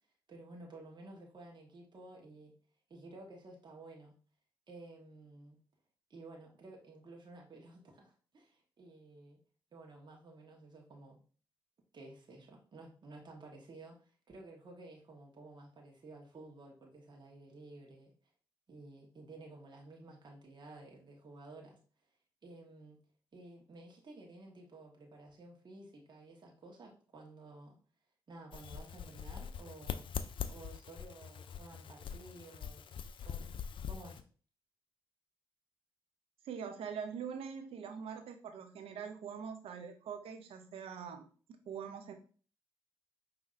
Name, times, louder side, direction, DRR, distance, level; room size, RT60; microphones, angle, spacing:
voice 1, 0.3-2.5 2.9-4.2 4.7-5.6 6.1-9.4 9.7-11.2 11.9-18.1 18.7-21.8 22.4-23.0 23.3-27.8 28.3-30.1 30.5-32.9 33.2-33.5 33.9-34.2, right 2 dB, 50° right, -1 dB, 1.2 m, -53 dB
sound 1, 28.5-34.2, left 7 dB, 60° left, 0.4 m, -43 dB
voice 2, 36.4-41.3 41.7-42.1, right 7 dB, 75° right, 6 dB, 0.7 m, -43 dB
5.4 x 2.9 x 2.5 m, 0.40 s
supercardioid pair, 45°, 10 cm